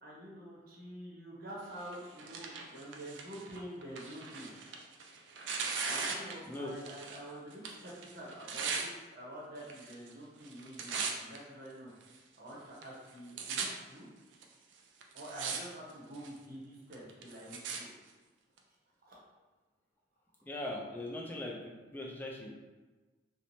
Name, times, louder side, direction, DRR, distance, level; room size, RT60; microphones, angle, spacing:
voice 1, 0.0-4.5 5.8-11.9 12.4-14.1 15.1-17.9 19.1-19.2, right 1 dB, 50° right, -4 dB, 0.7 m, -47 dB
Tearing, 1.8-7.2 7.5-8.9 9.6-10.1 10.4-11.4 12.0-12.1 12.8-12.9 13.1-13.7 14.4-14.5 15.0-15.6 15.9-16.4 16.9-17.8 18.6-18.7, right 5 dB, 70° right, 0.3 m, -39 dB
voice 2, 20.4-22.5, left 1 dB, 10° left, -2 dB, 0.3 m, -40 dB
2.9 x 2.1 x 2.6 m, 1.3 s
head